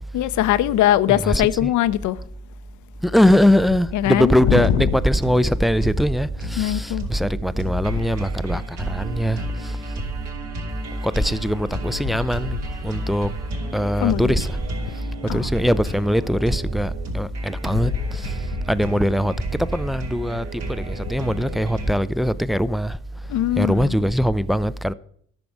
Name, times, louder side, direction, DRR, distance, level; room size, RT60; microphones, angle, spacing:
voice 1, 0.1-2.2 3.9-5.0 6.6-7.1 7.9-8.1 11.9-12.2 14.0-14.4 15.3-15.5 17.7-18.0 21.1-22.0 23.3-24.0, left 13 dB, 50° left, 0.6 m, -22 dB
voice 2, 1.3-1.7 3.0-9.8 11.0-13.3 13.7-14.5 15.2-18.4 18.7-23.0 23.6-24.9, equal, ahead, 0.4 m, -21 dB
sound 1, 4.5-21.9, right 2 dB, 70° right, 2.7 m, -31 dB
13.5 x 6.0 x 6.1 m
figure-of-eight pair, 45°, 37 cm